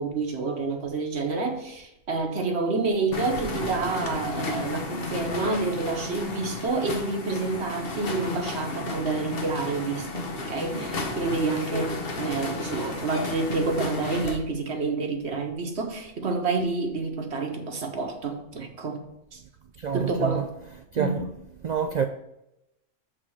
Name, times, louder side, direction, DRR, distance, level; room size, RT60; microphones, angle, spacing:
voice 1, 0.0-19.0 19.3-19.4 19.9-20.4 21.0-21.2, right 3 dB, 60° right, 1.3 m, -28 dB
sound 1, 3.1-14.4, left 2 dB, 50° left, 1.1 m, -33 dB
voice 2, 19.8-20.4 20.9-21.2 21.6-22.1, right 7 dB, 75° right, 0.4 m, -27 dB
7.6 x 3.7 x 6.3 m
omnidirectional pair, 1.3 m